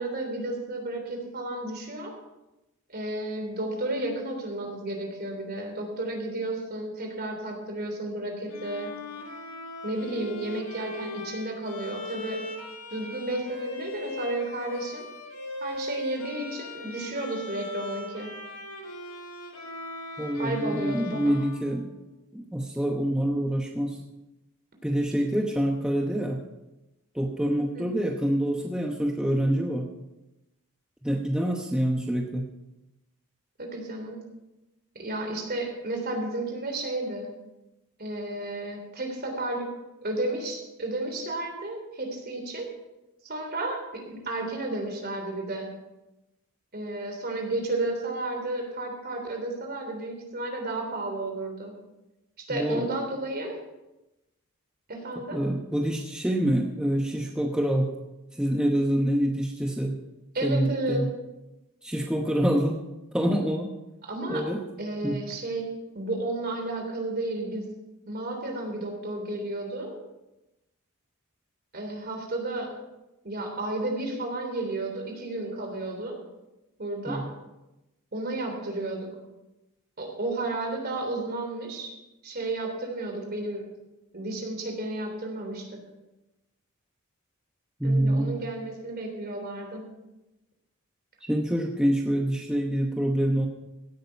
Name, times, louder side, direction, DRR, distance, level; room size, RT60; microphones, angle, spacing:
voice 1, 0.0-2.1 2.9-8.9 9.8-12.4 12.9-15.0 15.6-18.3 20.3-21.4 27.7-27.9 33.6-34.2 34.9-37.3 38.0-39.7 40.0-42.7 43.2-45.7 46.7-51.7 52.4-53.5 54.9-55.4 60.3-61.0 64.0-64.4 64.8-65.7 65.9-67.7 68.1-69.9 71.7-72.7 73.2-76.2 76.8-77.2 78.1-79.1 80.0-81.9 82.2-83.6 84.1-85.7 87.8-89.8, right 2 dB, 45° right, 3 dB, 3.3 m, -32 dB
Bowed string instrument, 8.5-22.4, left 2 dB, 65° left, 2.4 m, -39 dB
voice 2, 20.2-21.9 22.3-24.0 24.8-26.4 27.1-29.9 31.0-32.5 52.5-52.9 55.3-57.9 58.3-60.0 60.4-61.1 61.8-62.8 63.1-63.7 64.3-64.6 65.0-65.2 77.1-77.3 87.8-88.4 91.2-93.5, right 1 dB, 5° right, 0 dB, 0.9 m, -26 dB
16.5 x 8.7 x 5.4 m, 0.98 s
head